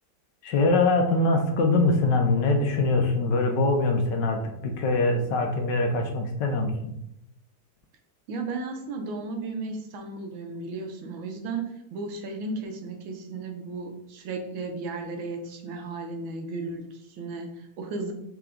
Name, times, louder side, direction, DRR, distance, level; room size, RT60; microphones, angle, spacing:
voice 1, 0.4-6.9, left 2 dB, 75° left, 4 dB, 1.2 m, -23 dB
voice 2, 8.3-18.1, right 3 dB, 85° right, 4 dB, 1.5 m, -34 dB
4.5 x 3.0 x 3.6 m, 0.77 s
omnidirectional pair, 2.1 m